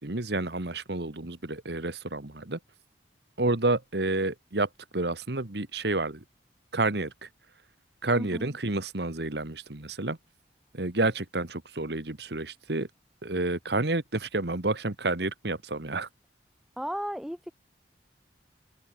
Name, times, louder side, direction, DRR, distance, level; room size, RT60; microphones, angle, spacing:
voice 1, 0.0-2.6 3.4-6.2 6.7-7.3 8.0-10.2 10.7-12.9 13.2-16.1, right 2 dB, 65° right, 1.7 m, -29 dB
voice 2, 8.1-8.5 16.8-17.5, equal, ahead, 3.4 m, -34 dB
head